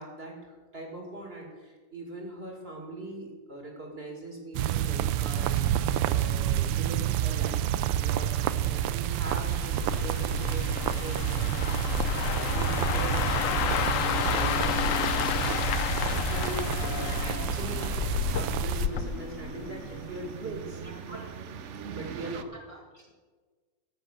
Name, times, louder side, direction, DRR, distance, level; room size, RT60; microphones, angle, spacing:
voice 1, 0.0-13.7 13.9-15.1 16.1-20.8 21.9-22.5, right 1 dB, 30° right, 0 dB, 2.5 m, -41 dB
sound 1, 4.5-18.9, right 12 dB, 85° right, 1.3 m, -29 dB
sound 2, 9.1-20.2 20.5-20.8, left 9 dB, 75° left, 0.7 m, -31 dB
sound 3, 15.0-22.4, right 8 dB, 65° right, 0.7 m, -43 dB
voice 2, 20.8-21.5 22.7-23.1, right 1 dB, 20° left, -1 dB, 1.3 m, -47 dB
13.5 x 8.1 x 6.5 m, 1.4 s
omnidirectional pair, 2.1 m